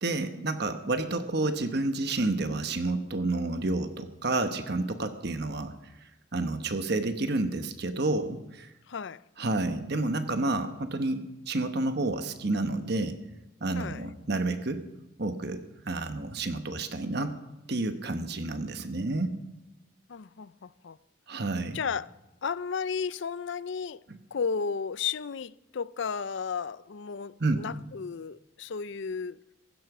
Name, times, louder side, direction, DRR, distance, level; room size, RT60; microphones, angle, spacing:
voice 1, 0.0-5.7 6.3-8.7 9.4-13.2 13.6-14.8 15.2-17.3 17.7-19.3 21.3-21.8 24.1-24.2 27.4-27.6, right 2 dB, 50° right, 1.1 m, -30 dB
voice 2, 8.9-9.2 13.7-14.0 20.1-21.0 21.7-22.1 22.4-24.0 24.3-29.4, left 6 dB, 60° left, 0.5 m, -33 dB
16.0 x 14.5 x 6.1 m
head